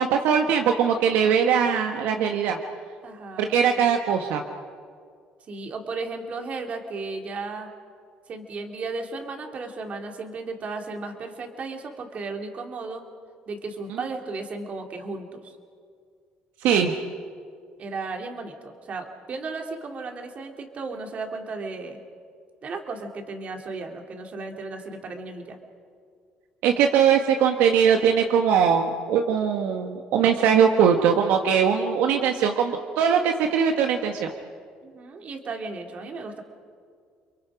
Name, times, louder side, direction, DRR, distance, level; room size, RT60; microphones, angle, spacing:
voice 1, 0.0-2.6 3.4-4.4 16.6-16.9 26.6-34.3, right 7 dB, 80° right, 4 dB, 1.4 m, -21 dB
voice 2, 3.0-3.6 5.5-7.7 8.3-13.0 13.5-15.5 17.8-22.0 22.6-25.6 34.8-36.4, right 3 dB, 45° right, 3 dB, 3.2 m, -35 dB
30.0 x 23.0 x 5.2 m, 2.1 s
cardioid pair, 105°, 3 cm